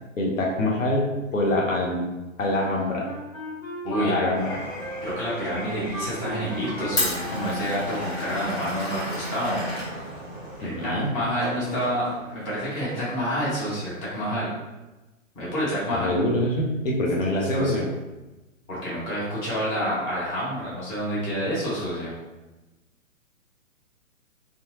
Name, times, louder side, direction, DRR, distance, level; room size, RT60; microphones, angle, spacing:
voice 1, 0.2-2.1 2.4-3.1 4.0-4.6 10.6-11.2 15.9-17.9, left 1 dB, 70° left, -1 dB, 0.7 m, -25 dB
Wind instrument woodwind instrument, 2.5-8.5, equal, 90° left, 1.2 m, -37 dB
voice 2, 3.8-4.2 5.0-9.6 10.6-14.5 15.3-16.1 17.5-17.8 18.7-22.1, equal, 15° left, -8 dB, 0.7 m, -28 dB
Glass, 4.3-10.6, left 1 dB, 35° left, 1.2 m, -33 dB
sound 1, 5.7-12.7, right 1 dB, 20° right, 0.6 m, -40 dB
2.7 x 2.3 x 2.6 m, 1.1 s
figure-of-eight pair, 125°, 41 cm